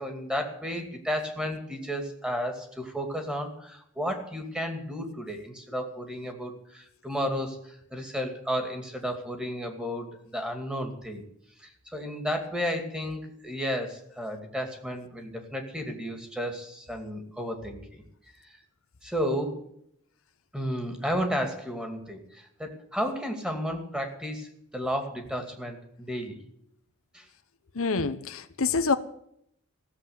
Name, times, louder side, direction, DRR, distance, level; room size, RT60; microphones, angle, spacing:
voice 1, 0.0-11.2 11.6-18.0 18.4-18.6 19.0-19.6 20.5-26.4 27.1-27.3, equal, 5° right, 4 dB, 2.4 m, -33 dB
voice 2, 27.8-29.0, left 4 dB, 70° left, 11 dB, 0.9 m, -26 dB
16.0 x 7.8 x 9.5 m, 0.71 s
head